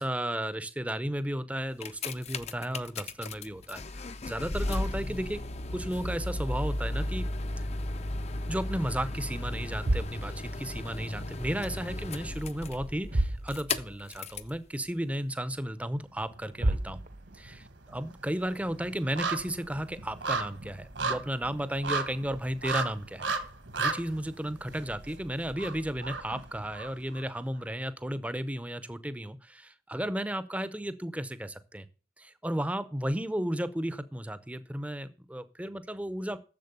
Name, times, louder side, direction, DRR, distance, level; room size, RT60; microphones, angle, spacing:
voice 1, 0.0-5.4 5.7-7.3 7.6-7.7 8.5-17.0 17.3-23.3 23.8-31.8 32.2-36.4, right 1 dB, 5° right, 14 dB, 0.6 m, -34 dB
sound 1, 1.6-14.6 15.3-15.4, left 2 dB, 35° left, 0.6 m, -35 dB
sound 2, 6.9-8.5 8.8-9.1 9.6-11.5 11.7-12.4 12.7-12.8 13.0-14.1 14.4-14.5 15.1-15.2 16.2-16.3 16.6-17.6, right 1 dB, 40° right, 0.8 m, -33 dB
sound 3, 16.2-17.0 17.3-27.2 27.6-27.7, right 4 dB, 65° right, 1.5 m, -35 dB
10.5 x 7.5 x 6.8 m, 0.38 s
head